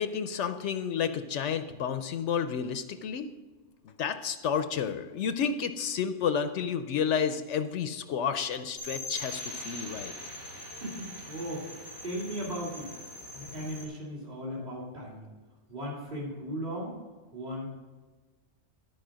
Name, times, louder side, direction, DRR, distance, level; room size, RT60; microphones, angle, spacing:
voice 1, 0.0-3.3 4.0-10.1, left 7 dB, 75° left, 9 dB, 0.9 m, -31 dB
sound 1, 8.8-13.8, left 1 dB, 80° right, 2.5 m, -42 dB
voice 2, 10.8-11.7 12.0-12.9 13.3-15.3 15.7-17.0 17.3-17.7, equal, 35° right, -4 dB, 2.5 m, -37 dB
13.0 x 4.5 x 6.2 m, 1.3 s
omnidirectional pair, 1.2 m